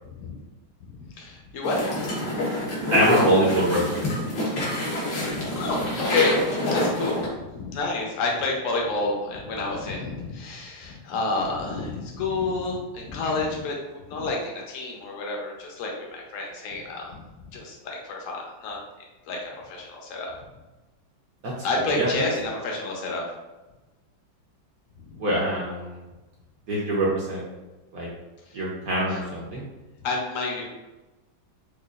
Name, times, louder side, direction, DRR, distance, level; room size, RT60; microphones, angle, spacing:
voice 1, 0.8-1.8 2.2-2.5 5.1-17.2 17.5-18.8 19.2-20.3 21.6-23.2 25.1-25.2 28.5-28.6 29.1-29.2 30.0-30.7, left 3 dB, 60° left, -1 dB, 0.8 m, -29 dB
sound 1, 1.6-7.3, left 1 dB, 90° left, 1.8 m, -26 dB
voice 2, 2.9-4.0 21.4-21.5 21.8-22.1 25.2-26.0 26.7-27.5 27.9-28.1 28.5-29.7, right 1 dB, 65° right, -5 dB, 0.9 m, -24 dB
4.8 x 2.3 x 2.4 m, 1.1 s
omnidirectional pair, 2.1 m